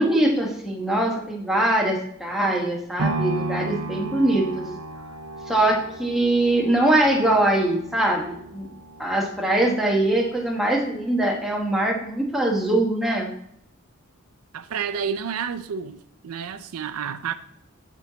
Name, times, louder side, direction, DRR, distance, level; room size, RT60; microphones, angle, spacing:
voice 1, 0.0-4.7 5.5-8.7 9.0-13.3, right 1 dB, ahead, 1.1 m, -22 dB
sound 1, 3.0-11.1 11.6-11.7, right 2 dB, 65° right, 0.8 m, -34 dB
voice 2, 14.5-17.3, right 7 dB, 85° right, 0.5 m, -30 dB
8.6 x 4.6 x 3.9 m
head